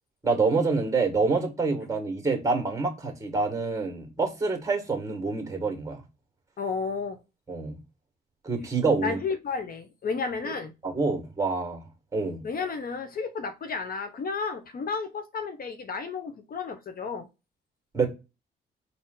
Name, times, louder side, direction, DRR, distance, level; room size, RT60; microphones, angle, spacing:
voice 1, 0.2-6.0 7.5-7.8 8.4-9.2 10.4-10.5 10.8-11.8 12.1-12.4 17.9-18.1, right 4 dB, 15° right, 2.0 m, -27 dB
voice 2, 6.6-7.2 9.0-10.7 12.4-17.3, left 5 dB, 50° left, 0.8 m, -32 dB
4.3 x 2.8 x 3.9 m
cardioid pair, 90°, 20 cm